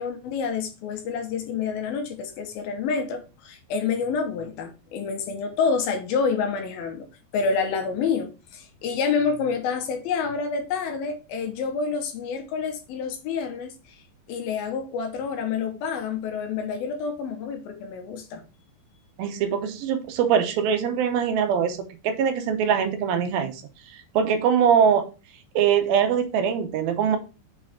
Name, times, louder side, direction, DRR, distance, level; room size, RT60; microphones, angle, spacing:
voice 1, 0.0-7.1 7.3-14.0 14.3-18.4, left 5 dB, 80° left, 3.0 m, -28 dB
voice 2, 19.2-23.6 24.2-25.1 25.6-27.2, right 7 dB, 80° right, 2.7 m, -22 dB
7.0 x 5.0 x 3.6 m
omnidirectional pair, 4.2 m